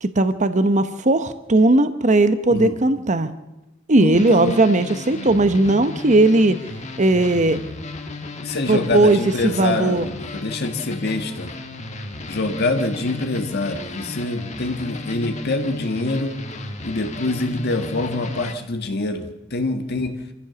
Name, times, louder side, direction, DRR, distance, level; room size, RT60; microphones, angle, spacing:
voice 1, 0.0-3.3 3.9-6.6 7.0-7.6 8.7-10.1, right 2 dB, 35° right, 11 dB, 0.9 m, -17 dB
voice 2, 4.0-4.6 8.4-11.5 12.3-16.4 16.8-20.2, left 2 dB, 55° left, 6 dB, 1.7 m, -25 dB
sound 1, 4.1-18.5, left 2 dB, 35° left, 1.6 m, -34 dB
26.0 x 15.0 x 7.0 m, 0.99 s
head